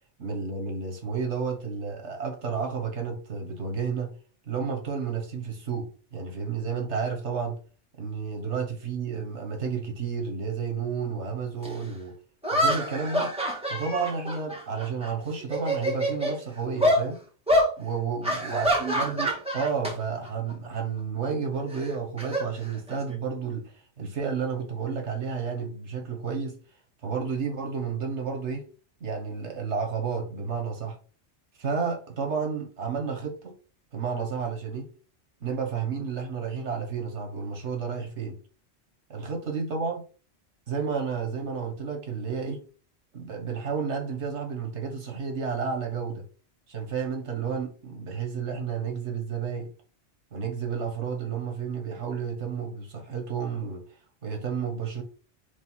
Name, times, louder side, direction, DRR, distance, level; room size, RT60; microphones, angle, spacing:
voice 1, 0.2-4.1 4.5-7.6 8.0-12.1 12.5-13.3 13.7-17.2 17.8-26.6 27.0-28.7 29.0-31.0 31.6-33.5 33.9-34.9 35.4-38.4 39.1-40.0 40.7-42.6 43.1-46.2 46.7-49.7 50.3-53.8 54.2-55.0, right 5 dB, 85° right, 1.7 m, -31 dB
sound 1, 11.6-11.7 12.4-15.1 15.4-16.4 16.8-17.0 17.5-17.7 18.2-19.9 20.2-20.5 21.7-23.2, equal, 5° right, 1.9 m, -26 dB
5.2 x 3.5 x 5.5 m
omnidirectional pair, 1.1 m